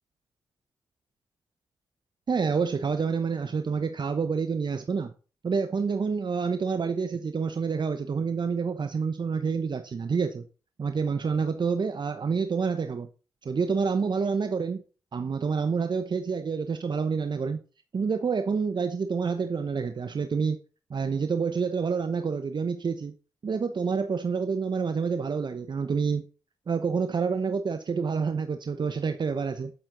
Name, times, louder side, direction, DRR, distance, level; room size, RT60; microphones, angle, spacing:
voice 1, 2.3-5.1 5.4-10.4 10.8-13.1 13.4-14.8 15.1-17.6 17.9-20.6 20.9-23.1 23.4-26.2 26.7-29.7, right 5 dB, 50° right, 0.9 m, -28 dB
12.0 x 7.8 x 3.9 m
supercardioid pair, 45°, 10 cm